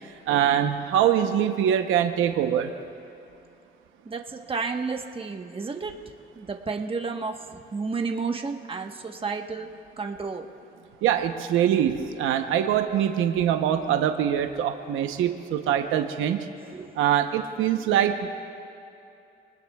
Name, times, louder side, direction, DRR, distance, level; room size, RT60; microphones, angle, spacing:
voice 1, 0.3-2.8 11.0-16.5 16.9-18.3, right 10 dB, 90° right, 6 dB, 0.9 m, -23 dB
voice 2, 4.1-5.9 6.4-9.7 10.0-10.5 16.6-16.9, right 4 dB, 25° right, 3 dB, 1.2 m, -31 dB
26.5 x 20.0 x 2.4 m, 2.6 s
cardioid pair, 90°, 20 cm